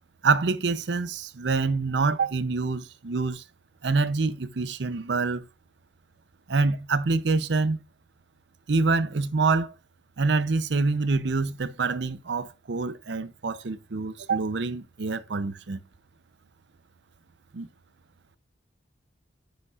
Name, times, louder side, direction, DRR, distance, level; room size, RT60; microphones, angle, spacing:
voice 1, 0.2-3.4 3.8-5.4 6.5-7.8 8.7-9.7 10.2-15.8 17.5-17.7, right 4 dB, 70° right, 0.6 m, -26 dB
10.0 x 8.2 x 2.4 m
head